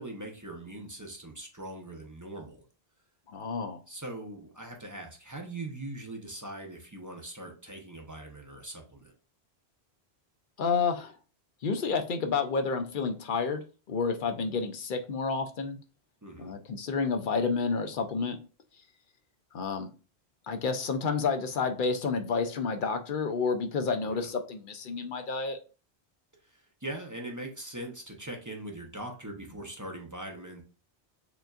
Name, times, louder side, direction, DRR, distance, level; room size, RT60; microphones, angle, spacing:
voice 1, 0.0-2.6 3.9-9.1 16.2-16.5 24.0-24.1 26.4-30.6, right 1 dB, 20° right, 1 dB, 0.6 m, -41 dB
voice 2, 3.3-3.8 10.6-11.1 11.6-13.6 13.9-15.8 16.4-18.4 19.5-19.9 20.5-25.6, left 5 dB, 60° left, 7 dB, 0.6 m, -30 dB
6.7 x 2.5 x 2.4 m, 0.35 s
omnidirectional pair, 1.1 m